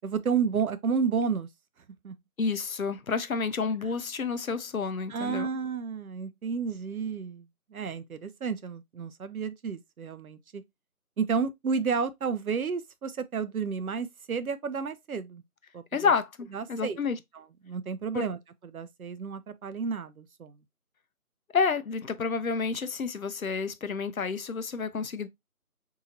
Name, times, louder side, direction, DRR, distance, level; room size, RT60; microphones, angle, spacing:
voice 1, 0.0-1.5 2.0-2.1 3.8-3.9 5.1-10.6 11.2-15.4 15.7-15.8 16.5-17.0 17.3-18.4 18.6-20.6, right 6 dB, 70° right, 0.6 m, -31 dB
voice 2, 2.4-5.5 15.9-17.2 18.1-18.2 21.5-25.3, left 5 dB, 65° left, 0.6 m, -29 dB
4.0 x 2.8 x 2.6 m
figure-of-eight pair, 175°, 45 cm